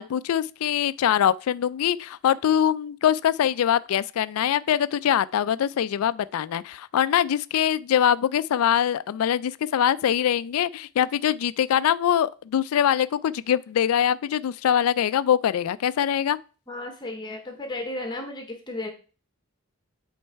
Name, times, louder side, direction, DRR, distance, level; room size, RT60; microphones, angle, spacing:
voice 1, 0.0-16.4, left 9 dB, 85° left, 0.3 m, -23 dB
voice 2, 16.7-18.9, left 2 dB, 20° left, 0.8 m, -34 dB
8.4 x 3.3 x 4.5 m
head